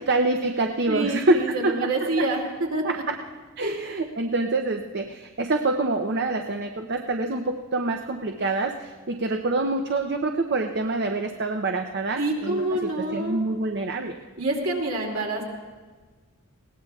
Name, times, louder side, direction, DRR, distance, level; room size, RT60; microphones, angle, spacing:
voice 1, 0.0-1.7 2.0-2.3 2.8-3.0 3.6-12.6 13.1-14.2, right 2 dB, 50° right, 4 dB, 0.6 m, -26 dB
voice 2, 0.9-2.4 2.7-3.0 3.6-3.8 12.2-13.4 14.4-15.4, right 2 dB, 65° right, -1 dB, 2.5 m, -27 dB
20.0 x 17.5 x 2.3 m, 1.4 s
head